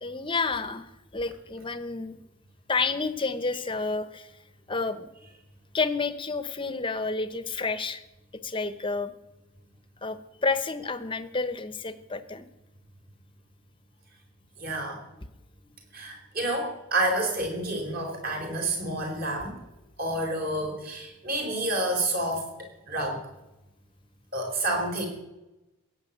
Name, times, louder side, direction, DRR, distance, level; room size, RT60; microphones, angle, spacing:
voice 1, 0.0-2.2 2.7-4.3 4.7-5.1 5.7-8.0 8.3-9.1 10.0-12.4, left 4 dB, 25° left, 12 dB, 0.9 m, -30 dB
voice 2, 14.6-15.0 15.9-19.6 20.0-23.2 24.3-25.1, right 1 dB, 45° right, 2 dB, 4.3 m, -29 dB
16.5 x 7.1 x 9.3 m, 0.97 s
head